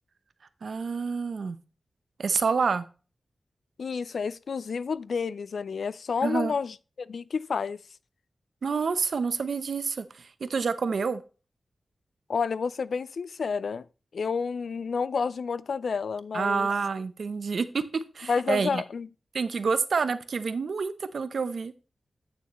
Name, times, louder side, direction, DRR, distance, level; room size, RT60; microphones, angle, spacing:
voice 1, 0.6-1.6 2.2-2.9 6.2-6.5 8.6-11.2 16.3-18.8 19.3-21.7, right 5 dB, 75° right, 0.7 m, -28 dB
voice 2, 3.8-7.8 12.3-13.9 14.1-16.7 18.3-19.1, left 5 dB, 75° left, 0.3 m, -30 dB
8.7 x 6.8 x 3.0 m
wide cardioid pair, 95°, 0 cm